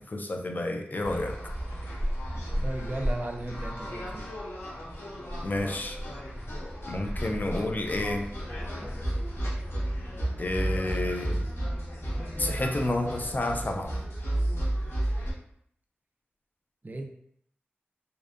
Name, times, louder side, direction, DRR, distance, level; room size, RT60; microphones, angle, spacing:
voice 1, 0.0-1.4 5.4-6.0 6.9-8.3 10.4-11.5 12.4-14.0, left 1 dB, 45° left, 3 dB, 0.4 m, -30 dB
sound 1, 1.0-15.3, right 1 dB, 70° left, 0.8 m, -33 dB
voice 2, 2.6-4.2 16.8-17.0, right 1 dB, 40° right, 3 dB, 0.4 m, -35 dB
2.6 x 2.1 x 2.4 m, 0.68 s
cardioid pair, 45°, 4 cm